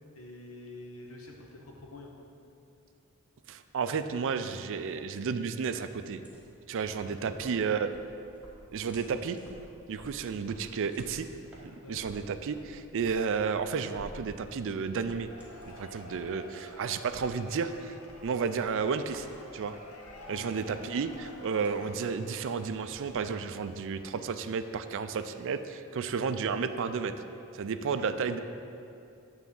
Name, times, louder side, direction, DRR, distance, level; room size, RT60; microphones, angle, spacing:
voice 1, 0.1-2.1 7.0-7.6 11.8-12.0 20.2-20.5 27.8-28.4, left 2 dB, 75° left, 0 dB, 1.1 m, -47 dB
voice 2, 3.5-6.2 6.7-7.9 8.7-9.4 9.9-11.3 11.6-15.3 15.7-18.0 18.2-19.3 19.5-19.8 20.3-27.1 27.5-28.4, right 5 dB, 60° right, 10 dB, 0.4 m, -32 dB
sound 1, 6.2-23.5, equal, 5° right, 1.3 m, -54 dB
Cheering / Applause / Crowd, 15.0-23.9, left 2 dB, 90° left, 1.0 m, -51 dB
9.2 x 3.5 x 7.0 m, 2.6 s
head